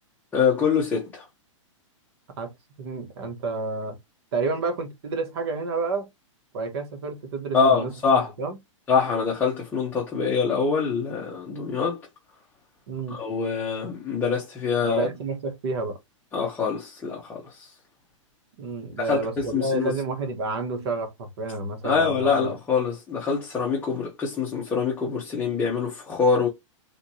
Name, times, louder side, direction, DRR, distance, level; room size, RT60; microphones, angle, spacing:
voice 1, 0.3-1.3 7.5-8.3 8.9-12.0 13.1-15.1 16.3-17.7 19.0-19.9 21.8-26.5, left 5 dB, 10° left, 0.9 m, -24 dB
voice 2, 2.4-4.0 4.3-6.1 6.5-7.9 8.4-8.6 12.9-13.2 14.8-16.0 18.6-22.6, right 3 dB, 50° right, 1.3 m, -30 dB
3.5 x 2.8 x 2.7 m
hypercardioid pair, 155°, 17 cm